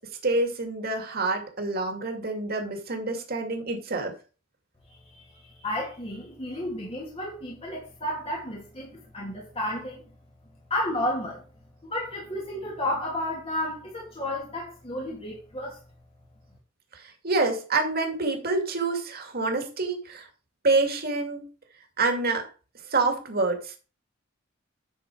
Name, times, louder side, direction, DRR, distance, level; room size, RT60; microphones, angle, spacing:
voice 1, 0.2-4.1 16.9-20.3 20.6-21.4 22.0-22.5 22.9-23.7, right 3 dB, 50° right, 2.4 m, -27 dB
voice 2, 4.9-10.0 10.7-11.4 11.8-15.8, left 1 dB, 30° left, 2.7 m, -32 dB
10.5 x 6.4 x 4.6 m
head